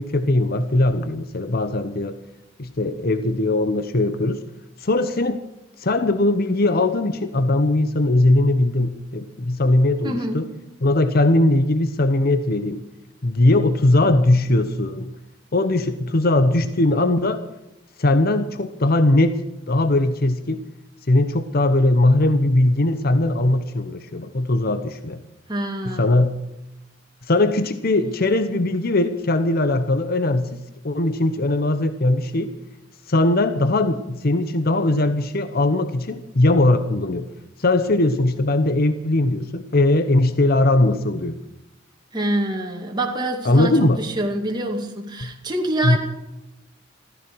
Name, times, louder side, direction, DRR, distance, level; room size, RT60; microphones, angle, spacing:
voice 1, 0.0-2.2 2.6-4.4 4.8-5.4 5.8-10.5 10.8-12.8 13.2-15.2 15.5-17.5 18.0-19.4 19.7-20.6 21.1-25.2 25.9-26.4 27.2-32.5 33.1-37.3 37.6-41.4 43.4-44.0 45.2-45.3 45.8-46.0, left 2 dB, 50° left, 10 dB, 0.9 m, -20 dB
voice 2, 10.0-10.4 25.5-26.2 42.1-46.0, right 1 dB, 20° right, 1 dB, 2.2 m, -26 dB
15.0 x 14.5 x 6.2 m, 0.94 s
head